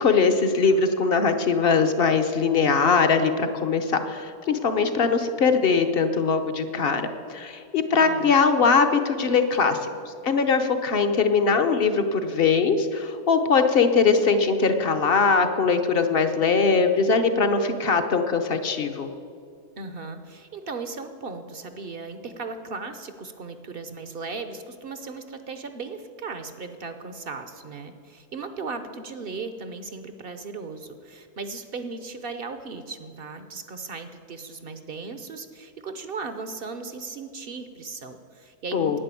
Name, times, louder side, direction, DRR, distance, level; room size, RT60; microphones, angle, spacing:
voice 1, 0.0-19.1 38.7-39.0, left 5 dB, 45° left, 8 dB, 0.9 m, -21 dB
voice 2, 7.9-8.3 19.8-39.0, right 4 dB, 50° right, 9 dB, 0.8 m, -37 dB
10.5 x 9.4 x 8.3 m, 2.3 s
omnidirectional pair, 1.6 m